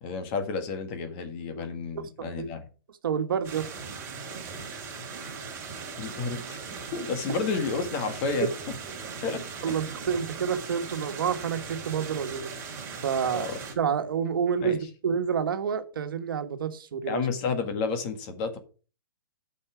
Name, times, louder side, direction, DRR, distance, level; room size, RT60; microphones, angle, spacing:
voice 1, 0.0-2.6 6.0-8.5 9.2-9.7 13.3-13.6 14.6-14.8 17.1-18.6, left 4 dB, 30° left, 7 dB, 1.7 m, -31 dB
voice 2, 1.9-2.5 3.0-3.7 9.6-12.5 13.0-13.5 13.8-17.2, right 7 dB, 70° right, 8 dB, 1.5 m, -29 dB
sound 1, 3.4-13.7, right 5 dB, 20° right, 3.4 m, -39 dB
8.7 x 5.6 x 5.9 m, 0.36 s
hypercardioid pair, 165°, 12 cm